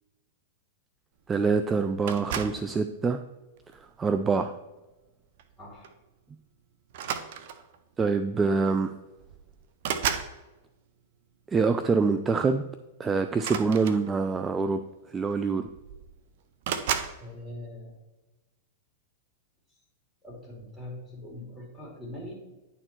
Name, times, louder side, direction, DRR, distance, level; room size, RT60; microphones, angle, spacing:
voice 1, 1.3-3.2 4.0-4.5 8.0-8.9 11.5-12.6 13.0-14.8 15.1-15.7, right 4 dB, 20° right, 9 dB, 0.4 m, -25 dB
sound 1, 2.1-2.7 3.6-3.9 5.4-5.5 5.8-6.0 6.9-7.8 8.8-8.9 9.2-10.4 13.3-14.4 15.3-15.4 15.6-16.2 16.6-17.2, right 8 dB, 60° right, 0.7 m, -33 dB
voice 2, 5.6-5.9 17.2-18.0 20.2-22.3, left 1 dB, 5° left, -3 dB, 2.9 m, -42 dB
10.0 x 4.4 x 4.4 m, 1.1 s
hypercardioid pair, 120°, 0 cm